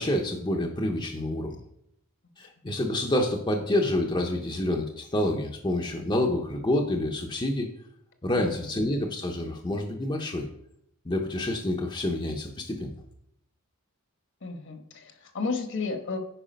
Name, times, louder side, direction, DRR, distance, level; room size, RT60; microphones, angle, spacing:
voice 1, 0.0-1.6 2.4-7.7 8.2-10.5 11.0-12.9, left 1 dB, 20° left, 2 dB, 0.7 m, -28 dB
voice 2, 8.3-8.7 14.4-16.2, left 4 dB, 55° left, 6 dB, 1.2 m, -33 dB
9.0 x 4.8 x 5.2 m, 0.74 s
head